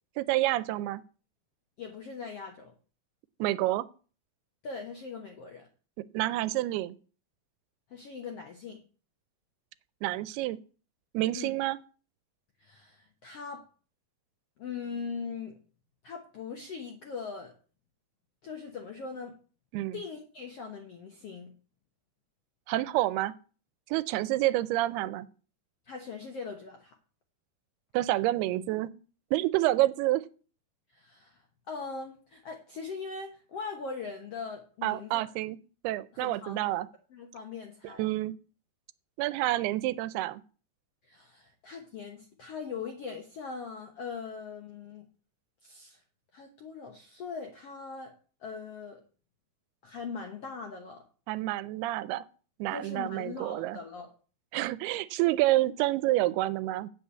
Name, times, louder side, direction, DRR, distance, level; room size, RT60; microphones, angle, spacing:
voice 1, 0.2-1.0 3.4-3.9 6.1-7.0 10.0-10.6 11.1-11.8 19.7-20.0 22.7-23.4 23.9-25.3 27.9-28.9 29.3-30.2 34.8-35.6 35.8-36.9 37.8-38.3 39.2-40.4 51.3-52.2 52.6-53.8 54.5-56.9, right 16 dB, 85° right, 17 dB, 2.6 m, -28 dB
voice 2, 1.8-2.7 4.6-5.7 7.9-8.8 11.4-11.5 12.6-13.6 14.6-15.6 16.0-17.5 18.4-19.4 19.9-21.6 25.9-27.0 30.9-31.4 31.7-35.2 36.1-36.6 37.1-38.0 41.1-45.1 45.6-46.0 46.3-48.1 48.4-49.0 49.8-51.0 52.7-54.1, left 5 dB, 75° left, 4 dB, 1.4 m, -40 dB
8.6 x 5.9 x 8.1 m, 0.39 s
omnidirectional pair, 4.5 m